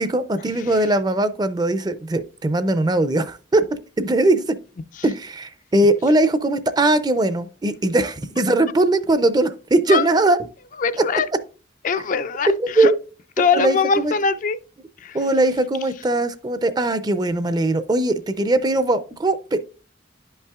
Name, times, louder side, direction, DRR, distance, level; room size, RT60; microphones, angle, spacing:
voice 1, 0.0-3.6 4.0-4.6 5.0-10.4 11.0-11.1 12.6-13.0 13.4-14.1 15.1-19.6, right 2 dB, 25° right, 0.5 m, -20 dB
voice 2, 10.8-11.3 11.8-12.9 13.4-14.6 15.0-15.2, left 5 dB, 45° left, 0.4 m, -21 dB
11.0 x 5.5 x 2.3 m
head